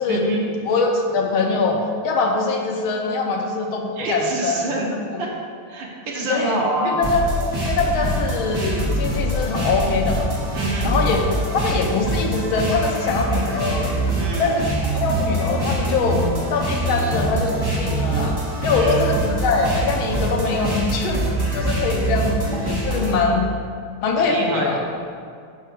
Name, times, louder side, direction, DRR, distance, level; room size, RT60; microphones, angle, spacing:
voice 1, 0.1-0.5 4.0-4.9 5.2-5.3 5.7-7.0 10.5-10.9 14.2-14.6 18.7-19.2 24.2-24.9, right 2 dB, 65° right, -2 dB, 1.6 m, -26 dB
voice 2, 0.6-1.8 2.0-4.7 5.1-5.2 6.3-7.2 7.6-10.3 10.8-13.9 14.4-14.7 14.9-16.2 16.5-21.2 21.5-23.5 24.0-24.8, left 4 dB, 75° left, 1 dB, 1.5 m, -23 dB
sound 1, 7.0-23.2, right 1 dB, 40° right, 0.3 m, -24 dB
5.6 x 4.6 x 6.0 m, 2.2 s
omnidirectional pair, 2.4 m